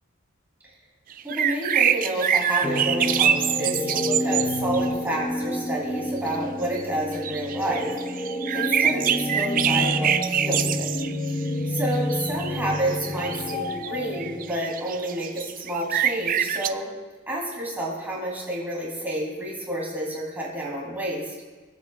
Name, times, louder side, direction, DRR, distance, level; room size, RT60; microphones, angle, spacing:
sound 1, 1.1-4.9 6.3-6.4 6.6-6.8 7.1-11.4 11.9-16.7, right 9 dB, 40° right, 0.4 m, -25 dB
voice 1, 1.2-11.4 11.7-16.9 17.3-21.3, right 1 dB, 10° right, -5 dB, 2.9 m, -30 dB
sound 2, 2.6-14.5, left 1 dB, 20° left, 0.8 m, -29 dB
25.0 x 8.4 x 2.3 m, 1.4 s
head